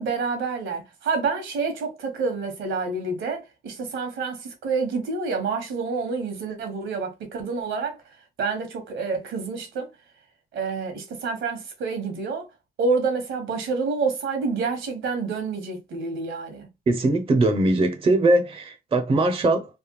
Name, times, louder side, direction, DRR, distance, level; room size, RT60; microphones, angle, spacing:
voice 1, 0.0-8.0 8.4-9.9 10.5-12.5 12.8-16.7, right 4 dB, 75° right, 1.2 m, -28 dB
voice 2, 16.9-19.7, right 2 dB, 30° right, 0.6 m, -21 dB
3.3 x 2.1 x 3.0 m
cardioid pair, 90°, 20 cm